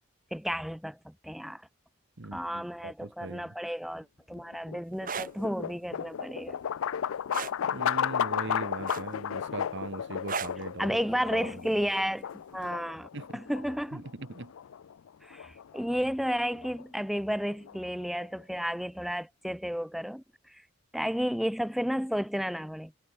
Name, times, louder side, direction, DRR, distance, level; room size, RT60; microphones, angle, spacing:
voice 1, 0.3-1.6 2.3-6.6 10.8-12.3 12.5-14.0 15.2-20.6 20.9-22.9, equal, ahead, 0.6 m, -32 dB
voice 2, 2.2-3.5 7.6-11.0 11.3-11.6 13.1-13.4 13.9-14.5, right 3 dB, 60° right, 1.1 m, -40 dB
sound 1, 4.3-18.4, left 8 dB, 75° left, 0.4 m, -35 dB
sound 2, 4.9-5.3 7.3-7.6 8.9-9.3 10.3-10.6 12.0-12.2, right 6 dB, 40° right, 1.8 m, -34 dB
head